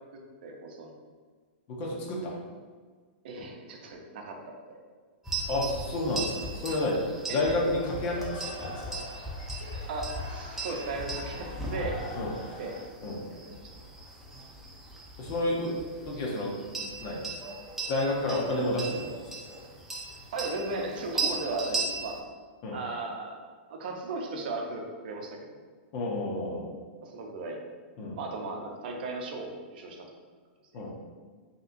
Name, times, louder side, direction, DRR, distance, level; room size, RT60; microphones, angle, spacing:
voice 1, 0.4-1.0 3.2-4.8 7.3-7.5 9.9-12.1 12.6-12.8 13.3-13.7 20.3-22.2 22.7-23.4 23.7-25.5 27.0-27.8 28.2-30.1 30.7-30.8, right 3 dB, 55° right, 1 dB, 0.6 m, -36 dB
voice 2, 1.7-2.4 5.5-8.3 8.6-9.0 12.2-12.3 13.0-13.2 15.2-15.8 16.1-16.6 17.0-17.2 17.9-19.1 22.6-22.8 25.9-26.7 28.0-28.2 30.7-30.9, left 1 dB, 35° left, -2 dB, 0.7 m, -30 dB
sound 1, 5.3-22.2, right 2 dB, 5° right, 0.5 m, -38 dB
sound 2, 7.2-12.9, left 2 dB, 55° left, 0.9 m, -44 dB
5.3 x 2.9 x 2.6 m, 1.5 s
supercardioid pair, 165°, 6 cm